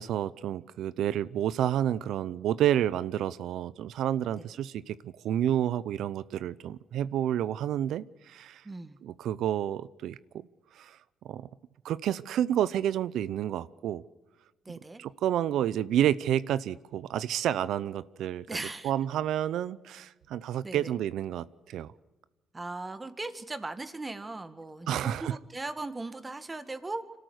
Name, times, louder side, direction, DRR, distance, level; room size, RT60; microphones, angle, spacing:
voice 1, 0.0-8.6 9.0-10.5 10.7-11.0 11.2-11.5 11.8-14.0 14.7-18.5 18.8-21.9 24.9-25.4, right 11 dB, 80° right, 0.6 m, -30 dB
voice 2, 8.6-9.0 14.7-15.0 18.5-18.9 20.6-20.9 22.5-27.2, right 2 dB, 20° right, 1.7 m, -38 dB
25.5 x 13.0 x 8.0 m
cardioid pair, 90°, 0 cm